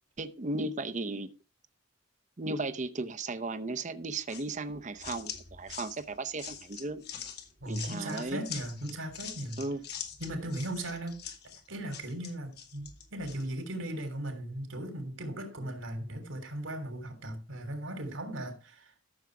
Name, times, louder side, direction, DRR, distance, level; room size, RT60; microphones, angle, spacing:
voice 1, 0.2-1.3 2.4-7.0 7.7-8.4 9.6-9.8, right 2 dB, 40° right, 0.7 m, -35 dB
sound 1, 4.3-13.5, left 8 dB, 55° left, 2.1 m, -44 dB
voice 2, 7.6-9.6 10.2-11.3 11.7-18.9, right 1 dB, 90° right, 3.3 m, -37 dB
13.0 x 7.2 x 4.7 m
head